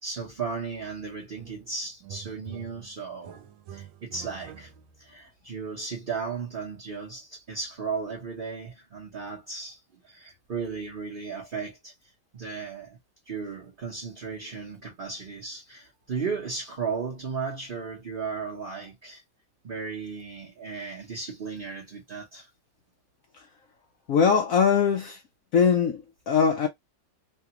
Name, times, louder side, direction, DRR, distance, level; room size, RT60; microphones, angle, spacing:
voice 1, 0.0-4.7 5.0-11.9 12.3-13.0 13.3-19.2 19.6-22.5, right 5 dB, 40° right, 0.8 m, -35 dB
sound 1, 1.4-1.7 2.0-5.1, right 10 dB, 85° right, 1.3 m, -46 dB
voice 2, 24.1-25.2 25.5-26.7, left 6 dB, 75° left, 0.7 m, -22 dB
3.2 x 2.4 x 2.8 m
omnidirectional pair, 2.0 m